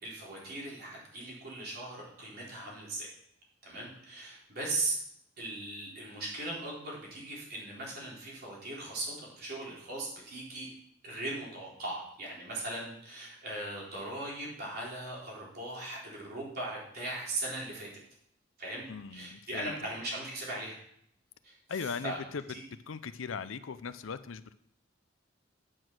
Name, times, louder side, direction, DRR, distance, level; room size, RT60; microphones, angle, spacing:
voice 1, 0.0-3.1 3.6-4.9 5.4-10.7 11.0-17.9 18.6-18.8 19.1-20.8 21.4-22.2 22.5-22.6, right 2 dB, 50° right, -4 dB, 3.7 m, -39 dB
voice 2, 18.9-19.7 21.7-22.4 22.9-24.5, left 5 dB, 80° left, 13 dB, 0.5 m, -39 dB
9.3 x 6.1 x 6.3 m, 0.70 s
head